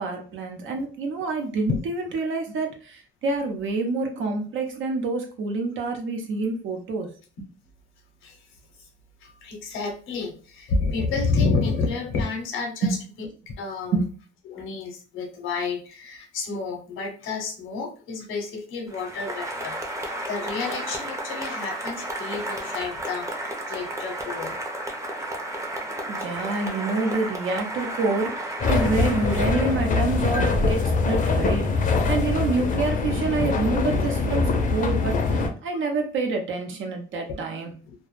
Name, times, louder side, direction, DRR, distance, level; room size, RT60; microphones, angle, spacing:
voice 1, 0.0-7.1 12.8-12.9 13.9-14.1 26.1-30.8 31.1-37.7, right 3 dB, 75° right, 3 dB, 0.7 m, -27 dB
voice 2, 9.2-13.9 14.5-19.8 20.0-24.5 35.7-35.8 37.9-38.0, left 4 dB, 85° left, 3 dB, 0.7 m, -30 dB
Applause, 18.9-30.4, right 1 dB, 15° right, 0.6 m, -33 dB
sound 1, 28.6-35.5, left 3 dB, 40° left, 0.5 m, -23 dB
2.1 x 2.0 x 3.0 m, 0.38 s
cardioid pair, 90°, 20 cm